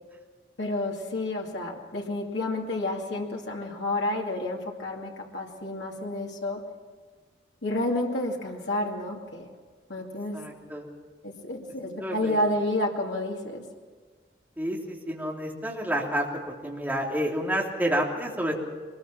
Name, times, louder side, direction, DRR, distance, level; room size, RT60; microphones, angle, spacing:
voice 1, 0.6-6.6 7.6-9.5 9.9-10.4 11.2-13.6, left 1 dB, 80° left, -1 dB, 2.4 m, -30 dB
voice 2, 10.3-10.9 12.0-12.4 14.6-16.3 16.6-18.6, equal, 10° right, -3 dB, 3.3 m, -29 dB
23.0 x 21.0 x 6.0 m, 1.5 s
head